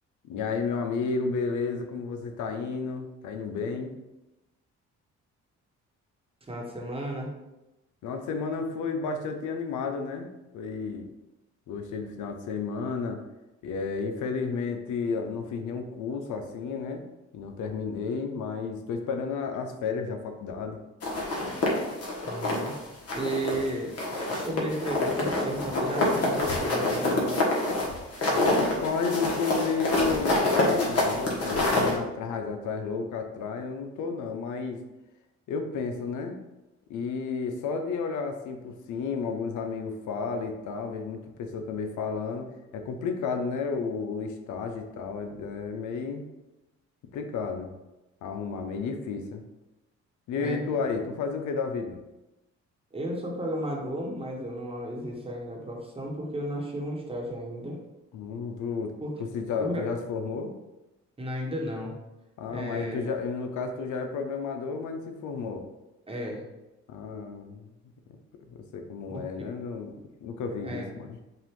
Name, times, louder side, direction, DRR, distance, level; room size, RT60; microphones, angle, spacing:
voice 1, 0.2-3.9 8.0-10.3 10.5-11.1 11.7-13.2 13.6-17.0 17.3-20.8 22.2-22.3 28.2-34.8 35.5-36.4 36.9-46.2 47.1-47.7 48.2-49.4 50.3-52.0 58.1-58.9 59.2-60.5 62.4-65.6 66.9-67.7 68.1-68.2 68.5-69.9 70.2-71.2, left 5 dB, 80° left, 5 dB, 0.7 m, -32 dB
voice 2, 6.4-7.3 22.2-22.8 23.1-24.0 24.3-27.5 50.4-50.6 52.9-57.8 59.0-59.2 59.6-59.9 61.2-61.9 62.5-63.1 66.1-66.4 69.1-69.2 70.6-71.0, right 1 dB, 20° right, -1 dB, 1.2 m, -34 dB
sound 1, 21.0-22.7 23.1-23.7 24.0-31.9, left 2 dB, 55° left, 1.4 m, -26 dB
5.6 x 2.6 x 3.7 m, 0.98 s
cardioid pair, 90°, 30 cm